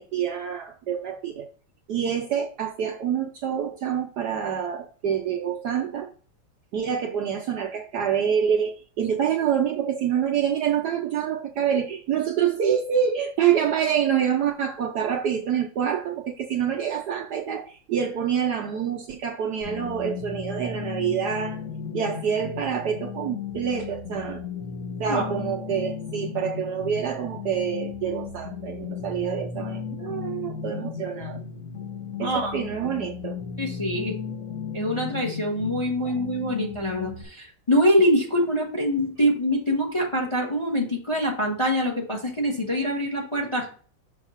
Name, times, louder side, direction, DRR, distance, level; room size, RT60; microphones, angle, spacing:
voice 1, 0.0-1.5 1.9-6.1 6.7-21.6 21.9-24.4 25.0-31.4 32.2-33.4 36.0-36.2, right 8 dB, 65° right, 2 dB, 1.1 m, -26 dB
sound 1, 19.6-37.2, left 6 dB, 45° left, 1.3 m, -35 dB
voice 2, 32.2-32.6 33.6-34.2 34.7-43.7, equal, 20° left, 0 dB, 1.1 m, -24 dB
6.3 x 2.9 x 5.5 m, 0.42 s
omnidirectional pair, 2.2 m